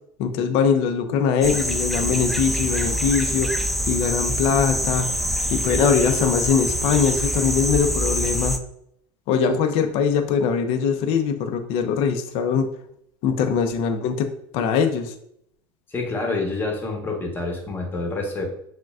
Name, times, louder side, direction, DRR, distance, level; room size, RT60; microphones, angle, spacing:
voice 1, 0.2-3.5 3.9-5.1 5.5-8.6 9.3-12.7 13.2-14.3 14.5-15.1, left 6 dB, 60° left, 7 dB, 0.5 m, -22 dB
sound 1, 1.4-8.6, equal, ahead, 0.3 m, -25 dB
voice 2, 15.9-18.4, left 3 dB, 20° left, 1 dB, 1.1 m, -27 dB
6.0 x 2.2 x 2.4 m, 0.72 s
supercardioid pair, 120°, 11 cm